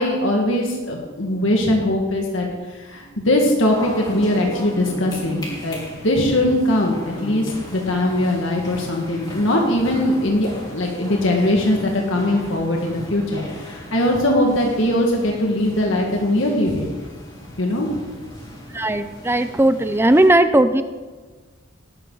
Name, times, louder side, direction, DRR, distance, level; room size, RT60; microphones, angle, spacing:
voice 1, 0.0-5.8 6.0-16.9 17.6-18.0, left 1 dB, 75° left, 0 dB, 1.9 m, -21 dB
sound 1, 3.6-20.3, equal, 20° left, 4.4 m, -37 dB
voice 2, 18.7-20.8, right 1 dB, 10° right, 11 dB, 0.6 m, -17 dB
18.5 x 12.5 x 4.0 m, 1.4 s
head